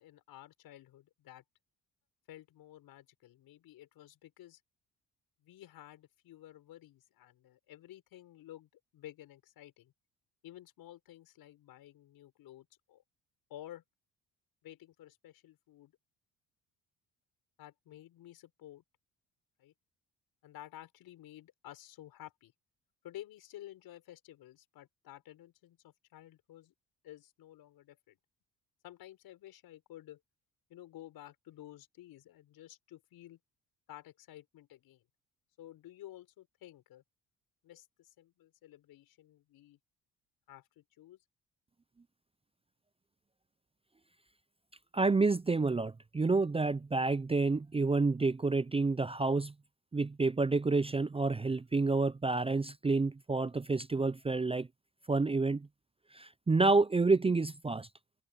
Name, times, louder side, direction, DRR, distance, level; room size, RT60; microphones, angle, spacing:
voice 1, 0.0-1.4 2.3-4.6 5.4-9.9 10.4-13.0 13.5-13.8 14.6-15.9 17.6-18.8 19.6-19.7 20.4-22.5 23.0-26.7 27.0-28.2 28.8-30.2 30.7-33.4 33.9-35.0 35.6-37.0 37.6-39.8 40.5-41.2, left 13 dB, 75° left, 6.1 m, -53 dB
voice 2, 44.9-49.5 49.9-54.7 55.1-55.7 56.1-57.9, right 3 dB, 15° right, 0.6 m, -29 dB
supercardioid pair, 60°, 37 cm